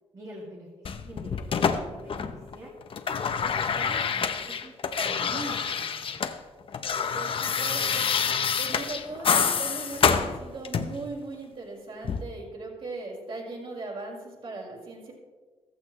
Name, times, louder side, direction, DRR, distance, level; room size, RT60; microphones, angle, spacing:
voice 1, 0.1-2.7 3.3-6.3, right 1 dB, 30° right, -4 dB, 2.1 m, -45 dB
sound 1, 0.8-2.5 2.8-6.4 6.6-11.1 12.0-12.2, left 6 dB, 50° left, 0.8 m, -27 dB
voice 2, 7.1-8.0 8.6-15.1, right 3 dB, 55° right, -3 dB, 4.8 m, -38 dB
15.0 x 14.5 x 3.2 m, 1.4 s
wide cardioid pair, 130°, 11 cm